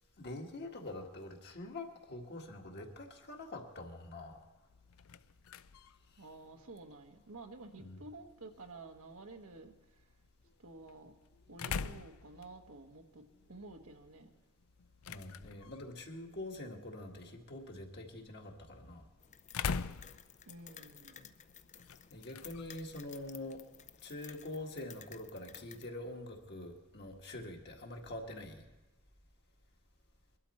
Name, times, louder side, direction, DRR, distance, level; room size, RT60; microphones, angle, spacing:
voice 1, 0.2-4.4 7.8-8.0 15.1-19.0 22.1-23.6 24.0-28.6, left 2 dB, 50° left, 1 dB, 1.9 m, -45 dB
sound 1, 4.7-24.6, left 6 dB, 80° left, 0.5 m, -47 dB
voice 2, 6.2-9.7 10.6-11.1 11.5-14.3 20.5-21.3, right 3 dB, 85° right, 4 dB, 1.2 m, -51 dB
sound 2, 19.2-25.9, left 9 dB, 35° left, 0.5 m, -55 dB
22.0 x 12.0 x 4.3 m, 1.1 s
head